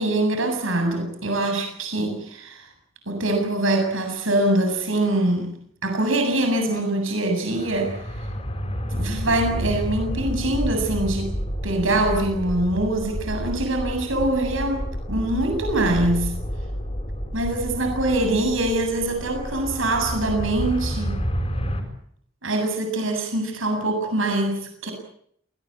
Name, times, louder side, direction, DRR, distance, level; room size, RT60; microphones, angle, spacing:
voice 1, 0.0-2.7 3.1-5.5 5.8-8.2 8.9-11.3 11.6-16.3 17.3-21.2 22.4-24.9, right 1 dB, 70° right, 5 dB, 7.8 m, -24 dB
sound 1, 7.5-21.8, equal, 30° left, 6.9 m, -30 dB
28.0 x 19.5 x 8.7 m, 0.67 s
head